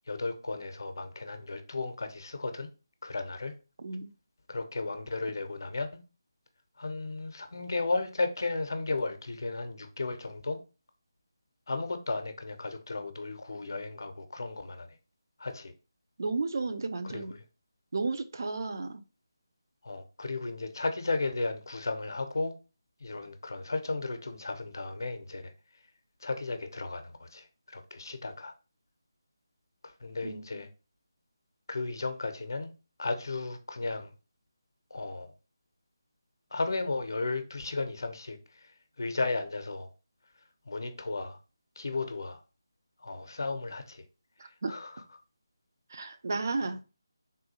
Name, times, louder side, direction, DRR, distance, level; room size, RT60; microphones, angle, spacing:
voice 1, 0.1-2.7 3.0-3.5 4.5-6.0 6.8-10.6 11.7-14.9 15.4-15.7 17.1-17.2 19.8-22.5 23.0-25.5 26.2-27.5 27.7-28.5 29.8-30.7 31.7-32.7 33.0-34.1 34.9-35.3 36.5-38.4 39.0-39.9 40.7-41.4 41.8-42.4 43.0-44.0 44.7-44.9, left 3 dB, 55° left, 0.5 m, -34 dB
voice 2, 3.8-4.1 16.2-17.3 17.9-19.0 30.2-30.6 44.4-44.8 45.9-46.8, right 3 dB, 50° right, 0.3 m, -33 dB
3.6 x 2.3 x 2.7 m
figure-of-eight pair, 155°, 2 cm